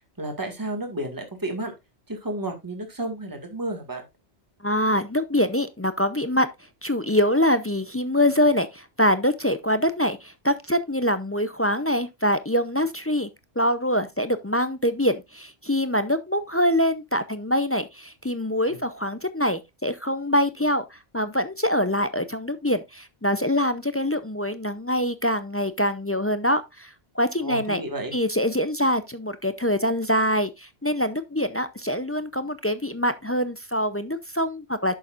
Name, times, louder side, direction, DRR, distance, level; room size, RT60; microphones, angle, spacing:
voice 1, 0.2-1.7 2.1-4.0 18.7-18.8 27.4-28.1, right 1 dB, 20° right, 1.9 m, -32 dB
voice 2, 4.6-6.5 6.8-13.3 13.6-27.8 28.1-34.9, equal, 20° left, 0.3 m, -24 dB
11.0 x 7.1 x 2.5 m
omnidirectional pair, 1.1 m